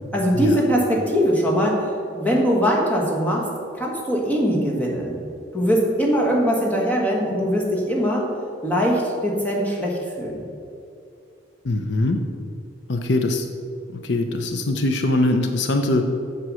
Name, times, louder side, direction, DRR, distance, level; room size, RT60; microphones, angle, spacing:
voice 1, 0.1-1.8 2.1-3.5 3.7-5.2 5.5-8.3 8.6-10.4, equal, 10° left, -3 dB, 1.6 m, -21 dB
voice 2, 11.6-12.2 12.9-13.5 13.9-16.1, left 2 dB, 65° left, 5 dB, 0.7 m, -22 dB
7.7 x 7.0 x 6.3 m, 2.4 s
head